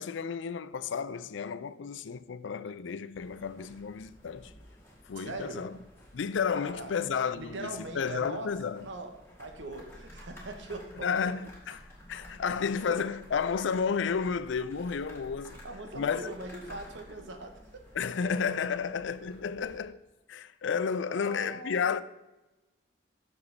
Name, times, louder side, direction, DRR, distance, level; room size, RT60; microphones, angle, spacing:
voice 1, 0.0-4.5 5.1-5.7 6.1-8.9 11.0-11.8 12.1-15.6 15.9-16.3 17.9-22.0, left 6 dB, 75° left, 0.4 m, -32 dB
sound 1, 3.1-19.8, left 1 dB, 15° left, 2.1 m, -52 dB
voice 2, 5.2-5.8 6.6-6.9 7.4-8.5 8.8-11.1 12.4-13.1 15.6-17.8 18.7-18.8 21.1-22.0, right 2 dB, 75° right, 1.1 m, -41 dB
7.1 x 6.7 x 4.0 m
head